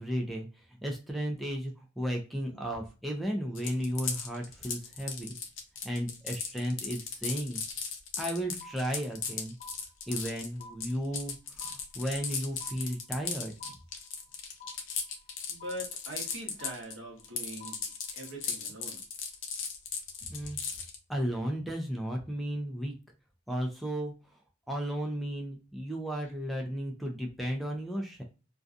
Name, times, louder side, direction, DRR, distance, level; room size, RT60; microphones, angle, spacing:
voice 1, 0.0-5.4 5.8-7.6 8.2-9.5 10.1-13.5 20.3-20.6 21.1-22.9 23.5-24.1 24.7-28.2, equal, ahead, 0 dB, 0.4 m, -34 dB
sound 1, 3.5-16.9 17.2-21.0, left 6 dB, 90° left, 0.6 m, -37 dB
sound 2, 8.6-9.3 9.6-10.3 10.6-11.3 11.6-12.3 12.6-13.3 13.6-14.3 14.6-15.3 15.6-16.3 16.6-17.3 17.6-18.3, left 2 dB, 45° left, 0.8 m, -51 dB
voice 2, 15.5-17.7 18.1-19.0, right 1 dB, 75° right, 1 dB, 0.9 m, -42 dB
2.5 x 2.2 x 2.3 m, 0.32 s
head